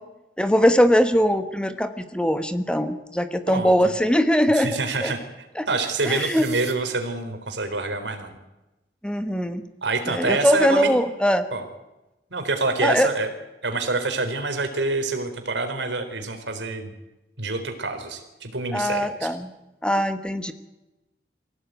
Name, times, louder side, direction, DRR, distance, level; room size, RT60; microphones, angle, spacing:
voice 1, 0.4-5.1 5.5-5.7 6.0-6.5 9.0-9.6 10.1-11.5 12.8-13.1 18.7-19.5 19.8-20.5, equal, 5° left, 9 dB, 1.3 m, -21 dB
voice 2, 4.6-5.2 5.7-8.4 9.8-10.9 11.5-11.6 12.3-13.3 13.6-16.9 17.4-19.1, right 3 dB, 85° right, 6 dB, 4.0 m, -26 dB
sound 1, 5.8-6.7, right 11 dB, 70° right, 3.0 m, -41 dB
23.5 x 16.5 x 9.3 m, 0.99 s
head